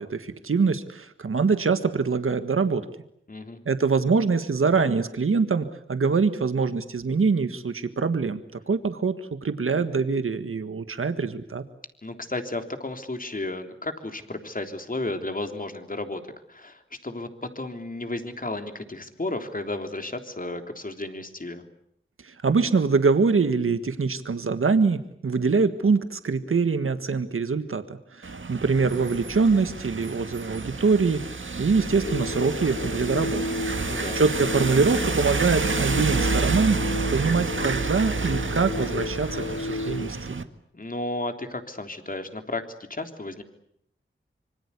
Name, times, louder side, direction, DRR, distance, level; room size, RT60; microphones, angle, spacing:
voice 1, 0.0-2.9 3.6-9.2 9.4-11.6 22.2-31.2 31.6-33.4 34.1-36.8 37.1-40.4, right 4 dB, 90° right, 10 dB, 1.6 m, -24 dB
voice 2, 3.3-3.6 12.0-16.2 16.5-17.3 17.5-21.7 33.7-34.2 40.7-42.6 42.9-43.4, left 2 dB, 40° left, 7 dB, 3.4 m, -33 dB
sound 1, 28.2-40.4, right 4 dB, 70° right, 1.9 m, -29 dB
sound 2, 31.8-40.2, left 3 dB, 90° left, 1.4 m, -33 dB
26.0 x 25.0 x 8.3 m, 0.72 s
wide cardioid pair, 60°, 21 cm